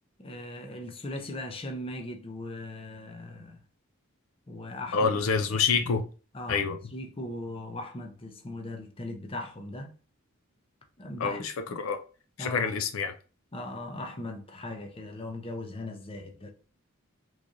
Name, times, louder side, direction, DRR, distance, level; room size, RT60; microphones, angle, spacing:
voice 1, 0.2-3.6 4.5-5.5 6.3-9.9 11.0-11.4 12.4-12.7 13.5-16.5, left 1 dB, 25° left, 0.6 m, -39 dB
voice 2, 4.9-6.0 6.5-6.8 11.2-11.5 11.8-12.0 12.4-13.1, left 5 dB, 70° left, 0.4 m, -26 dB
3.6 x 3.1 x 2.6 m
head